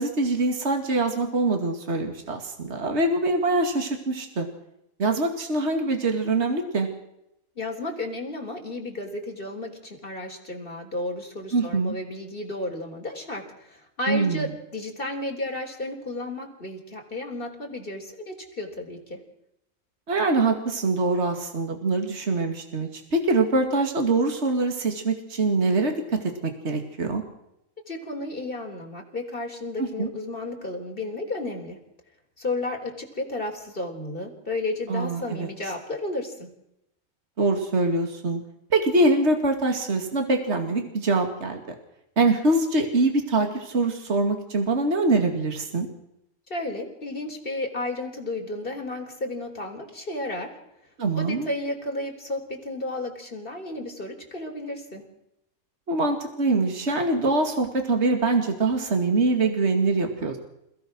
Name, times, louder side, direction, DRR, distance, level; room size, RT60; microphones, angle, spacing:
voice 1, 0.0-4.5 5.0-6.9 11.5-12.0 14.1-14.5 20.1-27.2 29.8-30.1 34.9-35.5 37.4-38.4 38.7-41.6 42.2-45.9 51.0-51.5 55.9-60.4, right 3 dB, 50° right, 4 dB, 2.6 m, -24 dB
voice 2, 7.6-19.2 27.9-31.8 32.4-36.5 46.5-50.5 51.2-55.0, left 2 dB, 40° left, 2 dB, 4.1 m, -33 dB
28.0 x 17.0 x 6.3 m, 0.83 s
omnidirectional pair, 1.5 m